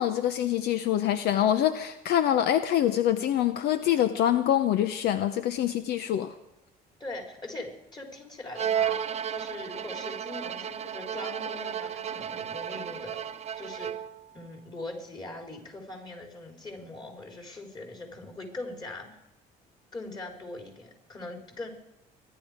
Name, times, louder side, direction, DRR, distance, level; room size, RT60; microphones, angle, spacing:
voice 1, 0.0-6.3, left 11 dB, 75° left, 11 dB, 0.7 m, -25 dB
voice 2, 7.0-13.2 13.6-14.1 14.3-19.2 19.9-21.7, left 2 dB, 25° left, 2 dB, 4.1 m, -41 dB
Bowed string instrument, 8.6-14.3, right 9 dB, 40° right, 0.5 m, -33 dB
24.5 x 11.0 x 5.1 m, 0.89 s
cardioid pair, 110°, 17 cm